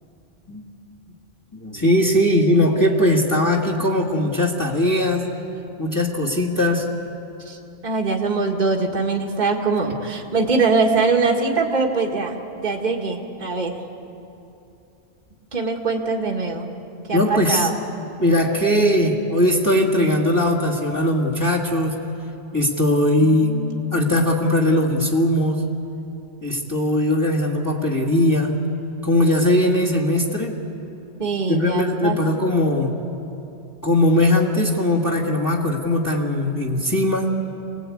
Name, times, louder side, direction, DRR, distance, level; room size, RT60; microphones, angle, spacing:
voice 1, 1.5-5.3 5.8-6.9 17.1-17.7 18.2-22.0 22.5-23.6 23.9-25.6 26.4-28.5 29.0-30.6 31.5-32.9 33.8-37.3, left 1 dB, 15° left, -2 dB, 2.0 m, -19 dB
voice 2, 7.8-13.8 15.5-16.6 17.1-17.7 23.2-23.9 31.2-32.2, right 4 dB, 40° right, 0 dB, 1.7 m, -22 dB
26.5 x 19.0 x 8.5 m, 2.8 s
omnidirectional pair, 1.3 m